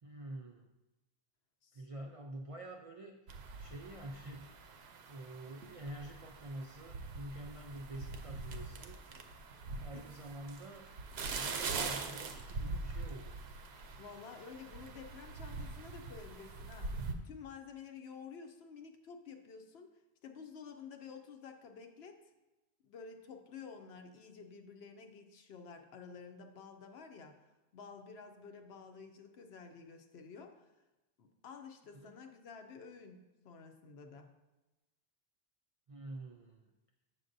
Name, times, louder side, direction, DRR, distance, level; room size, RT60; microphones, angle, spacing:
voice 1, 0.0-0.7 1.7-3.2 3.6-4.5 5.1-9.0 9.8-10.9 11.3-13.4 31.9-32.2 35.9-36.7, right 1 dB, 55° right, 1 dB, 0.4 m, -47 dB
sound 1, 3.3-17.1, right 4 dB, 75° right, 0.8 m, -43 dB
voice 2, 14.0-19.9 20.2-22.2 22.8-27.4 27.7-30.7 31.2-34.3, left 5 dB, 75° left, 5 dB, 0.9 m, -51 dB
7.4 x 6.5 x 2.6 m, 1.0 s
omnidirectional pair, 1.1 m